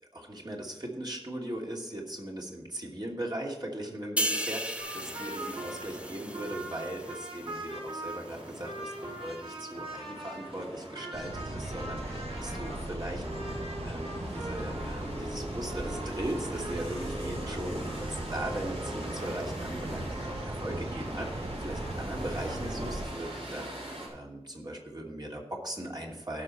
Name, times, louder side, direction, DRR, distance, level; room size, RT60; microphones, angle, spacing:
voice 1, 0.1-13.2 13.8-26.4, right 1 dB, 40° right, -2 dB, 2.7 m, -39 dB
sound 1, 4.2-7.7 8.1-8.3, equal, 10° right, 0.8 m, -35 dB
sound 2, 4.8-24.1, right 1 dB, 65° right, 3.9 m, -40 dB
sound 3, 11.1-23.0, right 1 dB, 80° right, 1.9 m, -38 dB
16.5 x 6.3 x 4.3 m, 0.89 s
wide cardioid pair, 50°, 11 cm